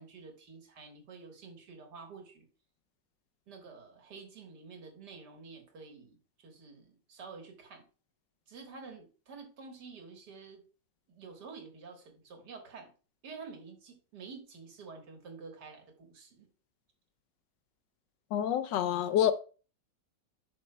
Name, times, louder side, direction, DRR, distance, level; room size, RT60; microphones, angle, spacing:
voice 1, 0.0-2.5 3.5-6.2 6.4-7.8 8.5-10.6 11.1-12.9 13.2-16.5, right 4 dB, 70° right, 2.0 m, -49 dB
voice 2, 18.3-19.3, left 10 dB, 80° left, 1.3 m, -27 dB
11.0 x 6.2 x 2.2 m
omnidirectional pair, 1.9 m